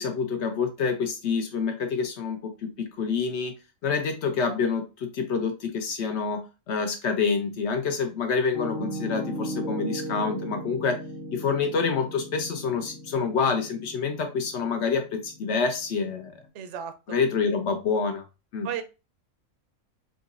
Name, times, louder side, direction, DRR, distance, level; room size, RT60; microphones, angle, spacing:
voice 1, 0.0-3.5 3.8-11.0 11.3-16.3 17.1-18.2 18.5-18.7, left 5 dB, 65° left, 6 dB, 0.8 m, -27 dB
Piano, 8.5-16.4, right 1 dB, 30° left, 0.8 m, -37 dB
voice 2, 16.5-17.2 18.6-18.8, right 9 dB, 65° right, 8 dB, 0.8 m, -34 dB
3.8 x 2.7 x 2.4 m, 0.29 s
omnidirectional pair, 1.5 m